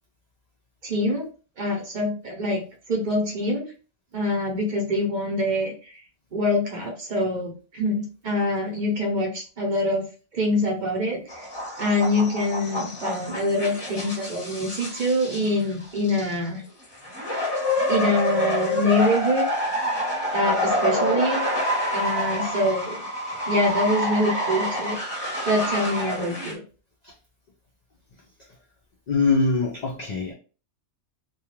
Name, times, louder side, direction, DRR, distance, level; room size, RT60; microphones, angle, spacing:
voice 1, 0.8-1.3 1.6-2.6 2.9-3.6 4.1-5.7 6.3-10.0 10.3-11.2 11.8-16.6 17.9-19.4 20.3-21.4 21.9-23.1 23.5-25.0 25.5-26.6, left 1 dB, 50° right, 0.7 m, -25 dB
sound 1, 11.3-16.4 16.9-26.5, left 1 dB, 25° left, 0.7 m, -27 dB
voice 2, 29.1-30.3, left 4 dB, 60° left, 0.4 m, -23 dB
2.3 x 2.2 x 2.9 m
omnidirectional pair, 1.2 m